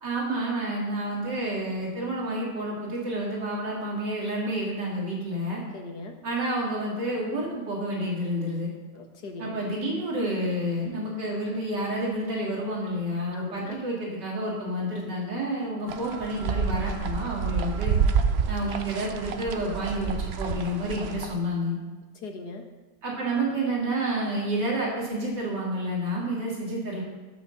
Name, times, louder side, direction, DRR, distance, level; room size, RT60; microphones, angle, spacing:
voice 1, 0.0-5.6 6.2-8.7 9.4-18.0 18.5-21.8 23.0-27.0, right 1 dB, 90° right, -4 dB, 3.4 m, -29 dB
voice 2, 5.7-6.2 8.9-9.6 13.3-13.8 22.2-22.7, left 2 dB, 70° left, 3 dB, 2.1 m, -40 dB
sound 1, 15.9-21.3, right 6 dB, 55° right, 0.7 m, -28 dB
15.0 x 6.4 x 7.0 m, 1.2 s
omnidirectional pair, 1.8 m